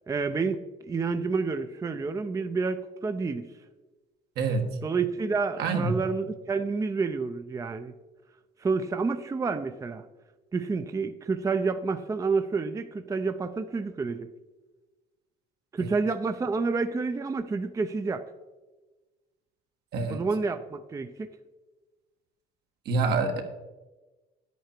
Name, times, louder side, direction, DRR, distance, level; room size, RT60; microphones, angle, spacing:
voice 1, 0.1-3.5 4.8-7.9 8.6-10.1 10.5-14.3 15.7-18.3 20.1-21.4, right 4 dB, 20° right, 9 dB, 0.5 m, -29 dB
voice 2, 4.4-4.7 5.6-5.9 19.9-20.2 22.8-23.4, right 3 dB, 75° right, 3 dB, 1.5 m, -26 dB
10.0 x 8.3 x 4.5 m, 1.2 s
cardioid pair, 110°, 17 cm